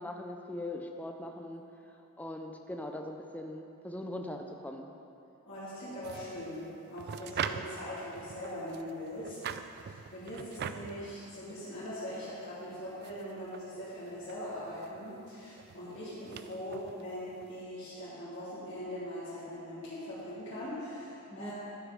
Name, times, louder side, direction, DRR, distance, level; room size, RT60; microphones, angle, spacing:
voice 1, 0.0-1.6 2.2-4.9 21.3-21.5, left 1 dB, 5° left, 3 dB, 0.5 m, -40 dB
voice 2, 5.5-9.4 9.7-21.5, equal, 55° left, -13 dB, 2.7 m, -41 dB
sound 1, 6.0-17.6, right 7 dB, 45° right, 0.3 m, -43 dB
11.5 x 6.6 x 5.2 m, 2.7 s
head